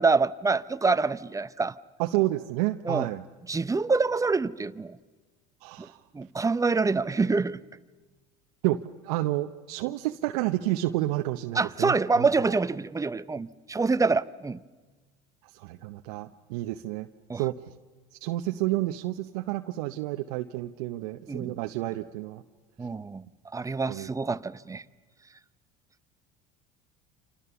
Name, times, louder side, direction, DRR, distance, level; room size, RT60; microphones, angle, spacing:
voice 1, 0.0-1.7 2.9-3.1 3.5-5.0 6.1-7.6 11.5-14.6 17.3-17.4 21.3-21.6 22.8-23.2 23.5-24.8, right 4 dB, 15° right, 0.8 m, -26 dB
voice 2, 2.0-3.2 5.6-6.0 8.6-12.3 15.5-17.1 17.3-17.5 18.2-22.4 23.9-24.1, right 16 dB, 70° right, 0.9 m, -30 dB
29.0 x 27.0 x 7.0 m
hypercardioid pair, 80°, 20 cm